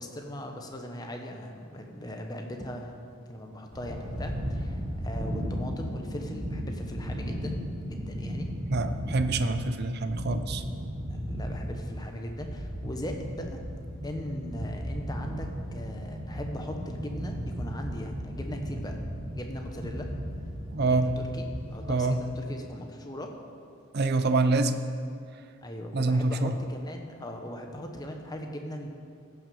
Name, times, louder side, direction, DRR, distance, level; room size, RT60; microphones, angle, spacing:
voice 1, 0.0-3.0 3.3-7.6 7.9-8.5 11.1-13.6 14.0-19.0 19.3-20.1 20.8-23.3 25.6-28.9, equal, 20° left, 3 dB, 0.9 m, -39 dB
sound 1, 3.7-22.4, equal, 25° right, 1.4 m, -35 dB
voice 2, 8.7-10.6 20.7-21.2 21.9-22.2 23.9-24.8 25.9-26.5, right 3 dB, 50° right, 10 dB, 0.5 m, -26 dB
15.5 x 6.0 x 5.4 m, 2.3 s
head